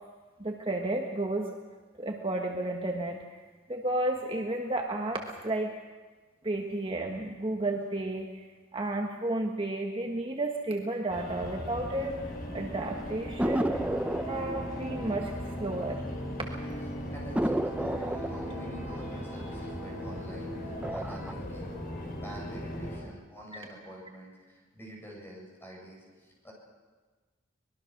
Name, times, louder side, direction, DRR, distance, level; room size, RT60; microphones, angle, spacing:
voice 1, 0.4-1.6 2.0-3.2 3.7-5.7 6.4-8.3 8.7-12.2 12.5-13.8 14.3-16.0, right 2 dB, 25° right, 1 dB, 1.4 m, -32 dB
sound 1, 11.1-23.0, equal, 50° left, 5.0 m, -38 dB
sound 2, 13.4-16.4 16.7-16.8 17.3-20.3 20.7-21.3, right 1 dB, 5° right, 0.6 m, -33 dB
voice 2, 17.1-21.8 22.2-26.5, equal, 10° left, -2 dB, 7.8 m, -47 dB
24.5 x 21.5 x 6.1 m, 1.3 s
head